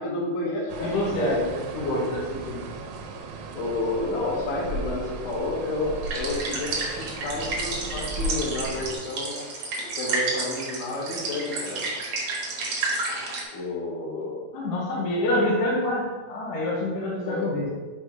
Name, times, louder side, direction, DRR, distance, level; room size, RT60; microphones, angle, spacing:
voice 1, 0.0-1.3 3.5-9.4 10.0-11.8 13.5-14.4 17.3-17.6, left 2 dB, 60° left, -5 dB, 2.5 m, -30 dB
sound 1, 0.7-9.0, right 2 dB, 85° right, 3.1 m, -36 dB
voice 2, 0.8-2.6 14.5-17.7, left 1 dB, 75° left, -4 dB, 1.9 m, -26 dB
sound 2, 6.0-13.4, right 3 dB, 60° right, 2.0 m, -31 dB
6.9 x 4.7 x 3.7 m, 1.3 s
omnidirectional pair, 5.2 m